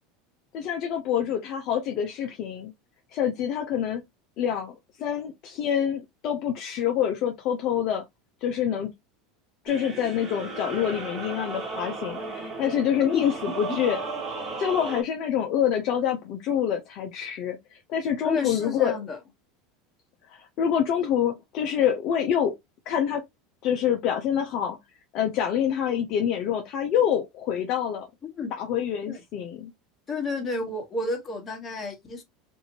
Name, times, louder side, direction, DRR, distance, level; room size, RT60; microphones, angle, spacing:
voice 1, 0.5-2.7 3.1-4.0 4.4-8.0 8.4-8.9 9.6-14.0 14.6-17.6 17.9-19.0 20.3-22.5 22.9-23.2 23.6-24.8 25.1-28.1 28.6-29.7, left 9 dB, 55° left, 0.6 m, -26 dB
Byzantine Chant, 9.7-15.0, right 3 dB, 40° right, 1.2 m, -35 dB
voice 2, 18.2-19.2 28.4-28.5 29.1-29.2 30.1-32.2, left 4 dB, 30° left, 1.3 m, -30 dB
2.7 x 2.6 x 2.8 m
hypercardioid pair, 95°, 0 cm